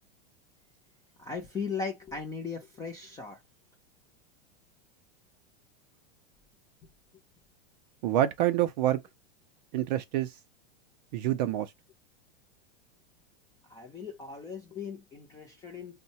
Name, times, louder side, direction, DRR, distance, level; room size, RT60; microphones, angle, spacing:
voice 1, 1.2-3.4 13.6-16.0, left 5 dB, 10° left, 0.5 m, -38 dB
voice 2, 8.0-9.0 9.7-10.3 11.1-11.7, right 12 dB, 45° right, 0.4 m, -27 dB
5.3 x 2.1 x 2.7 m
supercardioid pair, 155°, 30 cm